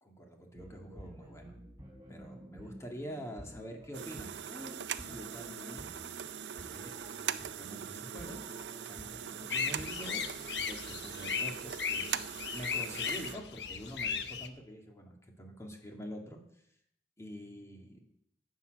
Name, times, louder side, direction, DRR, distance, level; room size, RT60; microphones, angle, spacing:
voice 1, 0.0-1.6 2.1-5.9 6.5-7.0 7.4-8.4 8.9-10.3 10.7-12.3 12.5-16.4 17.2-18.0, equal, 15° left, 2 dB, 2.1 m, -46 dB
sound 1, 0.5-10.6, equal, 20° right, 4.1 m, -52 dB
sound 2, 3.9-13.3, right 9 dB, 75° right, 0.5 m, -41 dB
sound 3, 9.5-14.5, left 6 dB, 70° left, 0.9 m, -36 dB
11.5 x 8.4 x 6.5 m, 0.75 s
head